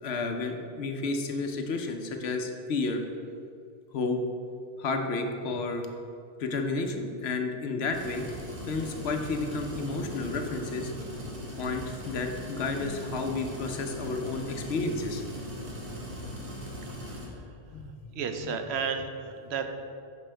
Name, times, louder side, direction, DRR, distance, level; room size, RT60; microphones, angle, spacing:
voice 1, 0.0-3.0 3.9-4.2 4.8-5.9 6.4-8.3 8.6-10.9 11.6-15.2 17.7-17.9, left 3 dB, 75° left, 5 dB, 1.0 m, -31 dB
sound 1, 7.9-17.3, equal, 60° right, 1.5 m, -39 dB
voice 2, 16.9-17.4 18.1-19.7, right 6 dB, 80° right, 7 dB, 0.9 m, -33 dB
8.8 x 6.0 x 3.3 m, 2.4 s
omnidirectional pair, 1.1 m